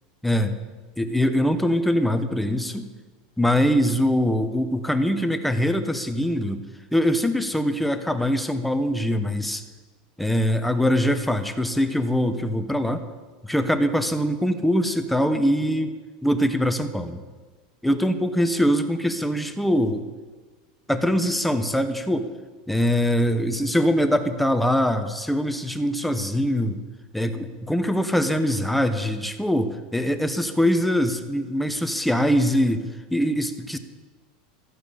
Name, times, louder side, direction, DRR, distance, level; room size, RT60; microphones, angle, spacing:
voice 1, 0.2-0.5 1.0-2.9 3.4-6.6 6.9-9.6 10.2-13.0 13.4-15.9 16.2-17.2 17.8-20.1 20.9-22.3 22.7-26.8 27.1-33.8, equal, ahead, 8 dB, 1.0 m, -23 dB
14.5 x 9.0 x 8.4 m, 1.4 s
supercardioid pair, 150°, 4 cm